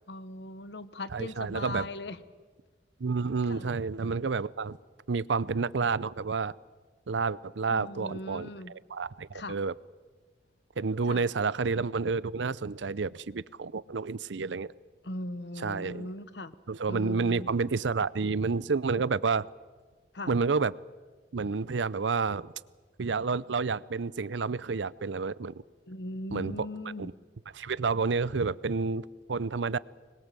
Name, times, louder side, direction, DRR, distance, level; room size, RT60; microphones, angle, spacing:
voice 1, 0.1-2.2 3.5-3.7 7.7-8.7 9.3-9.6 11.1-11.2 15.0-16.5 16.9-17.5 20.1-20.3 25.9-27.1, left 1 dB, 65° left, 13 dB, 1.1 m, -39 dB
voice 2, 1.1-1.9 3.0-4.8 5.1-6.5 7.1-8.5 8.9-9.7 10.8-14.7 15.6-16.1 16.7-19.5 20.3-20.7 21.3-22.5 23.0-25.5 26.3-26.7 27.5-29.8, right 4 dB, 80° right, 19 dB, 0.6 m, -29 dB
25.5 x 21.0 x 7.5 m, 1.4 s
head